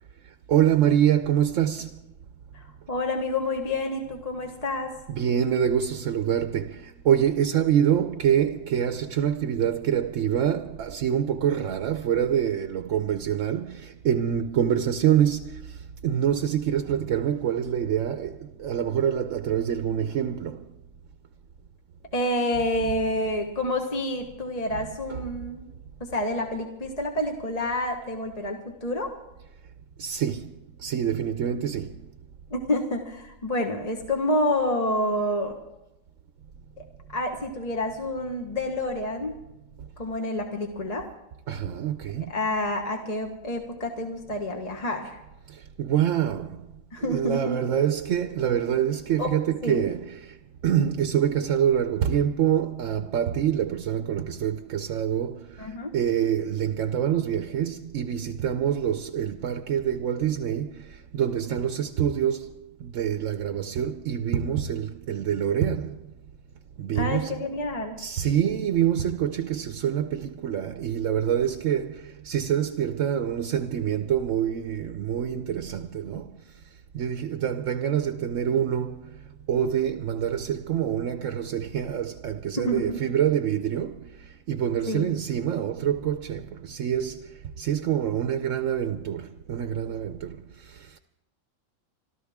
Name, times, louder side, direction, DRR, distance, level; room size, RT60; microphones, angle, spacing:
voice 1, 0.5-2.0 5.1-20.7 25.1-25.2 30.0-30.5 30.8-32.0 41.5-42.3 45.5-46.7 47.0-50.4 50.6-66.1 66.8-67.4 68.0-76.4 76.9-91.0, right 9 dB, 70° right, 1.0 m, -26 dB
voice 2, 2.5-4.9 22.1-25.7 26.0-29.1 32.5-35.6 36.8-36.9 37.1-39.3 40.0-41.0 42.3-45.2 46.9-47.7 49.2-49.3 49.6-49.9 55.6-55.9 67.0-68.0 82.6-83.0 84.9-85.0, left 1 dB, 30° left, 1.4 m, -28 dB
26.5 x 12.5 x 3.6 m
omnidirectional pair, 1.4 m